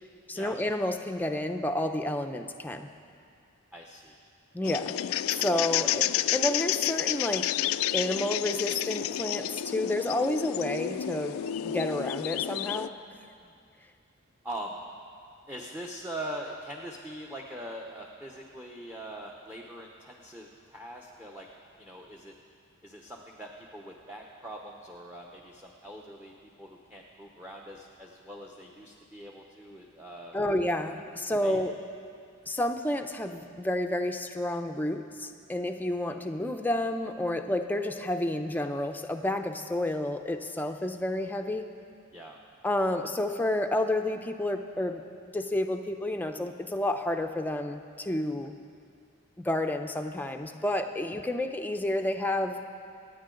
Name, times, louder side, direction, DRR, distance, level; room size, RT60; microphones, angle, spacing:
voice 1, 0.3-2.9 4.5-5.0 5.3-7.5 7.9-13.0 30.3-31.7 32.5-41.7 42.6-45.0 45.3-48.6 49.4-52.7, left 1 dB, 10° left, 5 dB, 0.6 m, -30 dB
voice 2, 3.7-4.2 5.7-6.0 13.4-13.5 14.4-14.8 15.5-21.5 21.8-22.3 22.8-26.3 26.6-30.4 31.4-31.6 42.1-42.4, right 1 dB, 10° right, 0 dB, 0.9 m, -42 dB
sound 1, 4.6-12.9, left 12 dB, 85° left, 0.3 m, -30 dB
26.5 x 9.2 x 3.9 m, 2.4 s
head